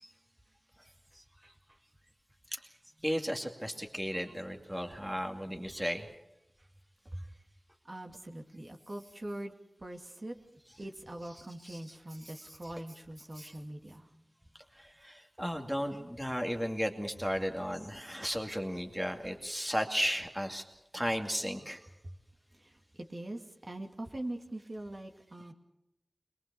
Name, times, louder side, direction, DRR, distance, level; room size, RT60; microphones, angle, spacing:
voice 1, 1.4-1.8 5.5-5.6 6.6-6.7 7.0-7.4 7.8-9.5 9.8-10.4 10.8-14.2 22.0-22.1 22.5-25.5, right 1 dB, 45° right, 3 dB, 2.6 m, -43 dB
voice 2, 3.0-6.1 11.7-11.8 13.4-13.5 14.8-20.6 20.9-21.8, equal, 5° right, 4 dB, 2.4 m, -34 dB
22.5 x 22.0 x 7.0 m, 0.90 s
cardioid pair, 45°, 0 cm